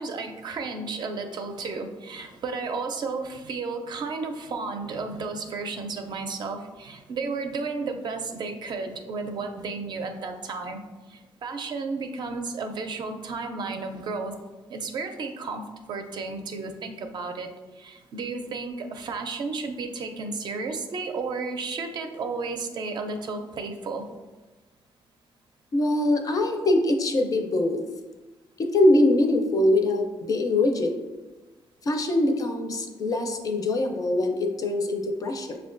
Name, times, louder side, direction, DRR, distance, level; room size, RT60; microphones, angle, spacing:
voice 1, 0.0-10.8 11.1-14.4 14.7-17.5 17.8-24.0, right 4 dB, 55° right, 5 dB, 0.4 m, -33 dB
voice 2, 25.7-27.8 28.6-30.9 31.8-35.6, left 1 dB, 40° left, 5 dB, 0.4 m, -23 dB
5.7 x 2.2 x 2.5 m, 1.2 s
cardioid pair, 110°, 9 cm